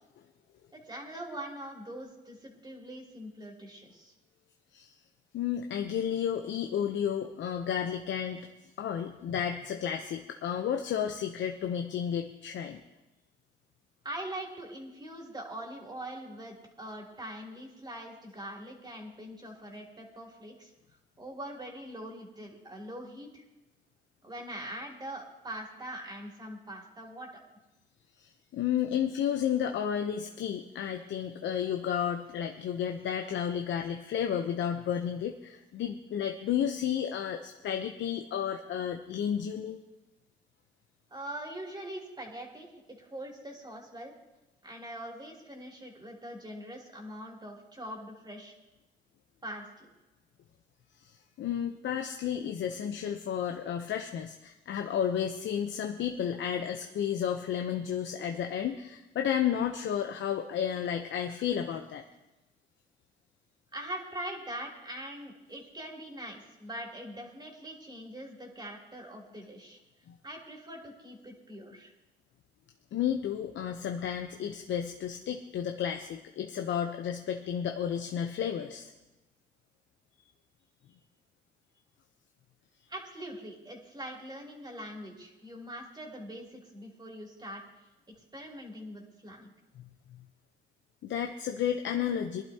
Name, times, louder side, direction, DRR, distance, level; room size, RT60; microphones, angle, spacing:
voice 1, 0.7-4.1 14.0-20.7 21.2-23.4 24.2-27.3 41.1-44.1 44.6-48.5 49.4-49.9 63.7-69.8 70.2-71.9 82.9-87.6 88.1-89.5, right 1 dB, 20° right, -1 dB, 3.2 m, -42 dB
voice 2, 5.3-8.5 8.8-12.8 28.2-39.8 51.1-62.0 70.1-70.2 72.9-78.9 91.0-92.4, left 9 dB, 70° left, 4 dB, 0.8 m, -32 dB
21.5 x 11.5 x 2.9 m, 1.0 s
cardioid pair, 90°, 20 cm